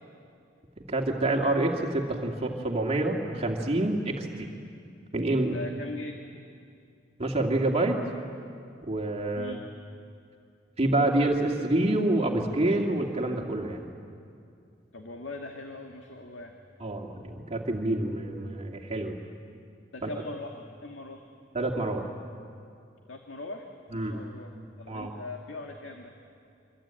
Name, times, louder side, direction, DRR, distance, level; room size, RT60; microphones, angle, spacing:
voice 1, 0.9-4.5 5.1-5.6 7.2-8.0 8.8-9.5 10.8-13.9 16.8-19.2 20.0-20.1 21.5-22.1 23.9-24.2 24.9-25.1, right 2 dB, 35° right, 1 dB, 2.2 m, -27 dB
voice 2, 5.4-6.2 9.4-9.7 14.9-16.5 19.9-21.2 23.1-23.7 23.9-26.1, left 2 dB, 85° left, 2 dB, 2.0 m, -40 dB
25.5 x 25.0 x 9.0 m, 2.4 s
head